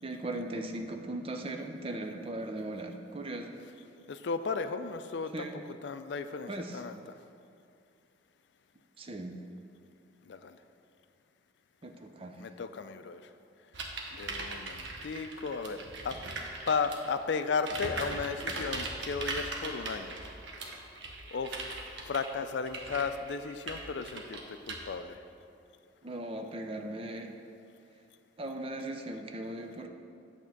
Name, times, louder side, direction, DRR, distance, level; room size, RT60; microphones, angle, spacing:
voice 1, 0.0-3.6 5.3-5.6 6.5-6.8 9.0-9.4 11.8-12.4 26.0-27.3 28.4-29.9, right 1 dB, 30° right, 5 dB, 0.5 m, -38 dB
voice 2, 4.1-5.5 5.8-7.0 10.3-10.6 12.4-13.2 14.1-15.8 16.0-16.1 16.7-20.1 21.3-21.6 22.0-25.2, left 5 dB, 65° left, 10 dB, 0.4 m, -34 dB
sound 1, 13.7-17.1 17.6-24.8, right 2 dB, 70° right, 0.9 m, -39 dB
8.6 x 3.6 x 6.6 m, 2.5 s
head